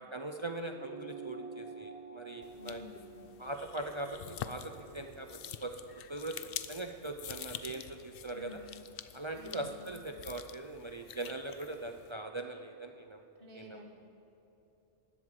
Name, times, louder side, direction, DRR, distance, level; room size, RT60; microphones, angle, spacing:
voice 1, 0.0-2.8 3.4-5.3 5.6-5.7 6.1-6.4 6.7-8.6 9.1-13.2 13.5-13.9, right 2 dB, 35° right, 5 dB, 0.5 m, -41 dB
sound 1, 0.7-5.5, right 5 dB, 70° right, 1.5 m, -49 dB
sound 2, 2.4-12.1, left 9 dB, 60° left, 0.7 m, -47 dB
voice 2, 2.5-3.2 8.3-8.7 9.3-9.9 13.4-13.9, left 2 dB, 50° right, 0 dB, 2.2 m, -51 dB
19.5 x 8.1 x 7.7 m, 2.9 s
omnidirectional pair, 1.2 m